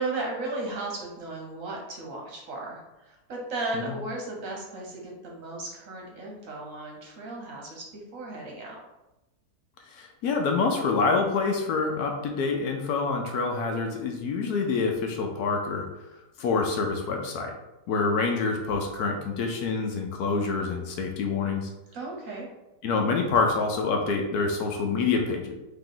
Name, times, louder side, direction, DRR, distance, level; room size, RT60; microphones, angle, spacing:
voice 1, 0.0-8.8 21.9-22.5, right 2 dB, 60° right, -1 dB, 1.1 m, -35 dB
voice 2, 9.9-15.8 16.4-17.5 17.9-21.7 22.8-25.6, left 4 dB, 70° left, 3 dB, 1.1 m, -26 dB
3.8 x 2.9 x 3.8 m, 0.98 s
omnidirectional pair, 1.8 m